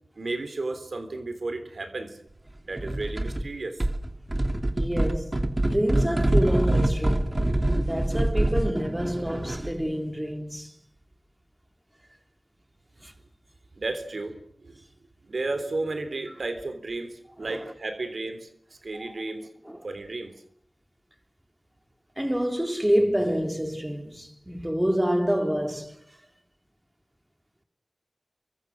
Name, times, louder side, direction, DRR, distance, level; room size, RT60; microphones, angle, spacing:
voice 1, 0.2-2.2 2.6-3.8 13.8-14.8 15.2-18.5 18.8-19.5 19.8-20.3 24.6-24.7, right 2 dB, 80° right, 3.5 m, -33 dB
sound 1, 2.8-3.5 3.8-9.8, right 1 dB, 35° right, 2.8 m, -25 dB
voice 2, 4.8-5.3 5.6-7.4 7.8-10.7 13.0-13.1 17.4-17.6 18.9-19.1 19.6-19.9 22.2-26.0, equal, 15° right, 3.7 m, -27 dB
29.0 x 24.0 x 6.4 m
wide cardioid pair, 50°, 0 cm